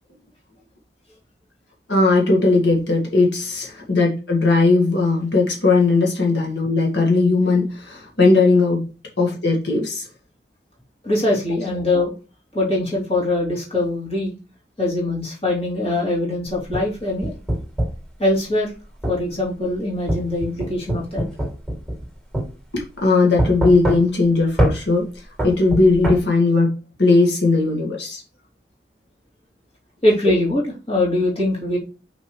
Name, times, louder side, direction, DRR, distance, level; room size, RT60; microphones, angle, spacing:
voice 1, 1.9-8.8 9.2-10.1 22.7-25.1 25.4-26.7 27.0-28.2, left 3 dB, 80° left, 1.8 m, -18 dB
voice 2, 11.0-12.1 12.5-14.3 14.8-17.3 18.2-18.7 19.1-21.2 30.0-31.8, left 1 dB, 35° left, 2.9 m, -22 dB
sound 1, 16.5-18.1 19.0-19.2 20.1-22.1 22.3-22.5 23.4-24.3 24.6-24.8 25.4-26.2, right 1 dB, ahead, 2.5 m, -22 dB
6.0 x 5.5 x 3.2 m
head